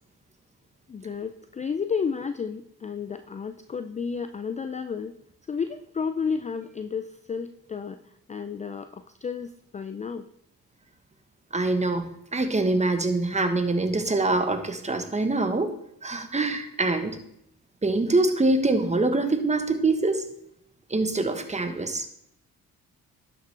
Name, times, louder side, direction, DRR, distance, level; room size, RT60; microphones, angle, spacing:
voice 1, 0.9-5.2 5.5-8.0 8.3-10.3, left 6 dB, 20° left, 10 dB, 0.4 m, -32 dB
voice 2, 11.5-17.2 17.8-20.3 20.9-22.1, right 2 dB, 20° right, 8 dB, 1.1 m, -24 dB
11.5 x 5.9 x 3.3 m, 0.74 s
supercardioid pair, 65°, 35 cm